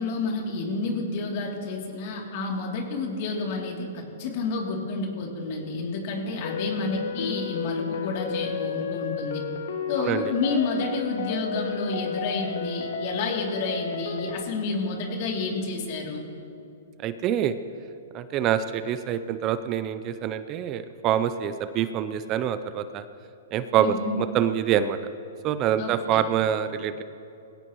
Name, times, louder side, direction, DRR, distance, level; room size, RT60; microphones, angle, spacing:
voice 1, 0.0-9.4 9.9-16.2 23.8-24.2 25.8-26.2, left 3 dB, 50° left, 0 dB, 3.0 m, -30 dB
sound 1, 6.4-14.4, left 6 dB, 65° left, 1.3 m, -32 dB
voice 2, 10.0-10.3 17.0-17.6 18.1-23.0 23.5-25.0 25.4-27.0, right 9 dB, 30° right, 11 dB, 0.6 m, -26 dB
21.5 x 17.0 x 3.1 m, 2.8 s
hypercardioid pair, 130°, 0 cm